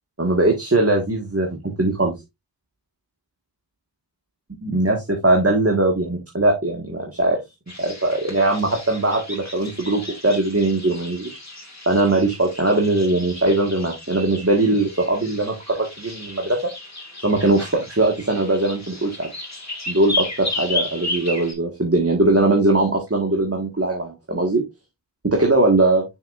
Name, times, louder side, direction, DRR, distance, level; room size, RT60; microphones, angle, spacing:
voice 1, 0.2-2.1 4.6-7.4 7.8-11.4 11.8-16.6 17.2-19.3 19.9-24.6 25.2-26.0, right 2 dB, 35° right, 1 dB, 1.7 m, -20 dB
sound 1, 7.7-21.5, left 3 dB, 40° left, 2.3 m, -34 dB
6.5 x 6.3 x 2.5 m, 0.20 s
wide cardioid pair, 45°, 43 cm